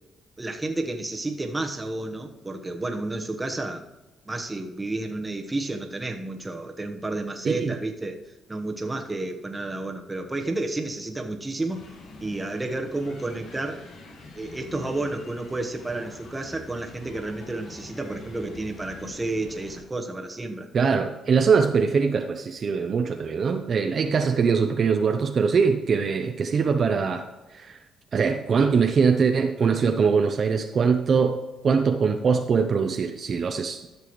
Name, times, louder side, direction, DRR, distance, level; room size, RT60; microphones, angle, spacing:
voice 1, 0.4-3.8 4.3-8.2 8.5-11.8 12.2-13.8 14.3-20.7, right 2 dB, 15° right, 3 dB, 1.1 m, -31 dB
voice 2, 7.4-7.7 20.7-27.8 28.1-33.8, right 5 dB, 50° right, 6 dB, 0.6 m, -22 dB
sound 1, 11.7-19.8, left 3 dB, 70° left, 1.6 m, -45 dB
13.0 x 6.9 x 3.1 m, 1.1 s
cardioid pair, 90°, 0 cm